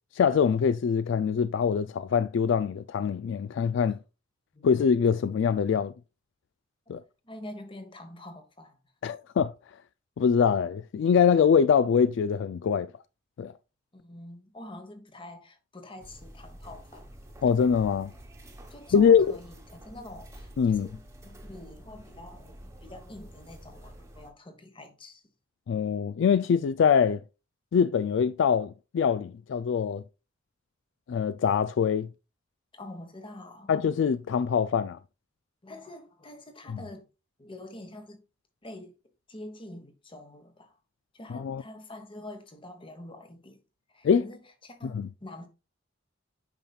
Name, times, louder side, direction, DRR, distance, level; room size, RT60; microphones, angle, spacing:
voice 1, 0.1-4.0 4.6-5.9 6.9-7.0 9.0-9.5 10.2-12.9 13.4-13.5 17.4-18.1 18.9-19.3 20.6-20.9 25.7-27.2 27.7-30.0 31.1-32.1 33.7-35.0 41.3-41.6 44.0-44.2 44.9-45.1, left 7 dB, 65° left, 0.3 m, -23 dB
voice 2, 6.9-8.8 13.9-17.2 18.7-25.2 32.7-33.7 35.6-37.1 37.4-38.2 38.6-38.9 39.3-40.8 41.1-43.6 43.9-45.5, left 1 dB, 25° left, 1.2 m, -46 dB
sound 1, 16.0-24.3, right 1 dB, 15° right, 1.2 m, -48 dB
8.8 x 5.6 x 2.3 m
head